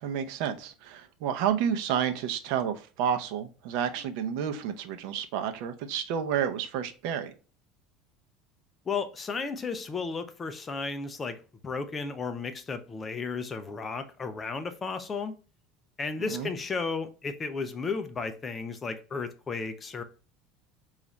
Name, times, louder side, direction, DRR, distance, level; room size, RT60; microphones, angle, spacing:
voice 1, 0.0-7.3 16.3-16.5, right 8 dB, 60° right, 0.5 m, -30 dB
voice 2, 8.9-11.4 11.6-15.3 16.0-20.0, left 4 dB, 15° left, 0.4 m, -34 dB
3.9 x 2.4 x 3.1 m
cardioid pair, 170°, 0 cm